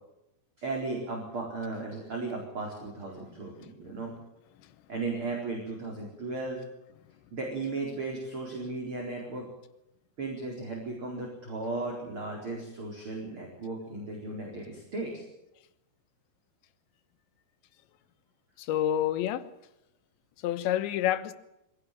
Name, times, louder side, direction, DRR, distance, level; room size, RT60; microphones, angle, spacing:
voice 1, 0.6-4.1 4.9-6.7 7.3-9.5 10.2-15.2, right 3 dB, 30° right, 4.8 m, -36 dB
voice 2, 18.6-19.5 20.4-21.3, left 11 dB, 85° left, 3.5 m, -28 dB
24.5 x 17.0 x 9.1 m
omnidirectional pair, 5.0 m